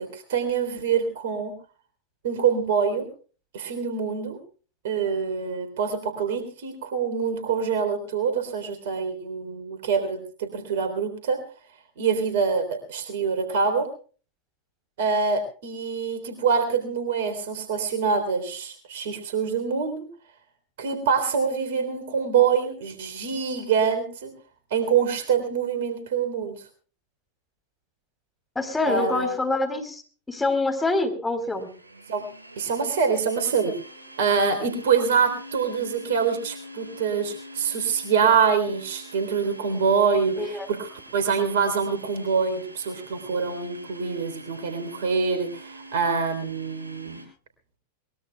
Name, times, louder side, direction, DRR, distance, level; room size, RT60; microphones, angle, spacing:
voice 1, 0.0-1.5 2.2-3.1 3.5-4.4 4.8-11.4 12.0-13.9 15.0-20.1 20.8-24.3 24.7-26.6 28.9-29.4 32.1-32.2 32.6-33.8 34.2-47.2, right 6 dB, 55° right, 8 dB, 3.6 m, -25 dB
voice 2, 28.6-30.0 30.3-31.7 40.4-40.7, left 2 dB, 10° left, 5 dB, 4.0 m, -25 dB
Domestic sounds home sounds, 31.4-47.3, right 1 dB, 80° right, 7.5 m, -45 dB
23.0 x 21.0 x 2.3 m, 0.39 s
figure-of-eight pair, 90°, 0 cm